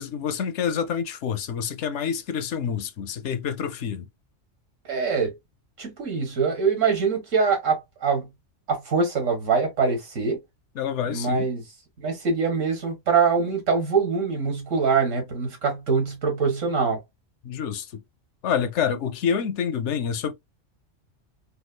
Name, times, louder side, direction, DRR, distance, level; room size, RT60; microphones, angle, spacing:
voice 1, 0.0-4.1 10.8-11.5 17.4-17.9 18.4-20.3, left 7 dB, 70° left, 0.9 m, -27 dB
voice 2, 4.9-5.3 5.8-8.3 8.7-10.4 11.1-11.6 12.0-17.0, right 5 dB, 80° right, 1.8 m, -24 dB
4.8 x 2.2 x 2.2 m
omnidirectional pair, 1.3 m